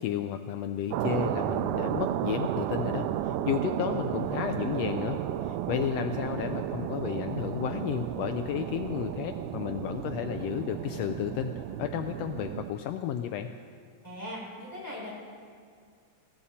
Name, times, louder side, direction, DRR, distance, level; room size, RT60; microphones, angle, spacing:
voice 1, 0.0-11.5 11.8-13.5, left 10 dB, 85° left, 7 dB, 1.5 m, -32 dB
sound 1, 0.9-12.7, right 11 dB, 85° right, 2.0 m, -33 dB
voice 2, 14.0-15.1, equal, 5° right, -6 dB, 5.5 m, -39 dB
21.0 x 15.5 x 4.3 m, 2.2 s
omnidirectional pair, 3.5 m